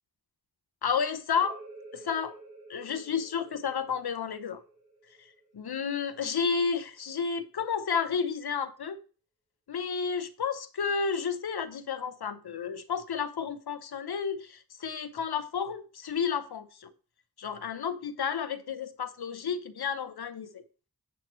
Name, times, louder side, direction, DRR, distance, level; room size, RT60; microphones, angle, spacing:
voice 1, 0.8-1.6 1.9-2.3 2.7-4.6 5.5-9.0 9.7-16.9 17.4-20.6, left 6 dB, 90° left, 0.8 m, -31 dB
sound 1, 1.3-6.7, right 2 dB, 80° right, 3.9 m, -51 dB
8.3 x 6.9 x 3.1 m
wide cardioid pair, 55°, 38 cm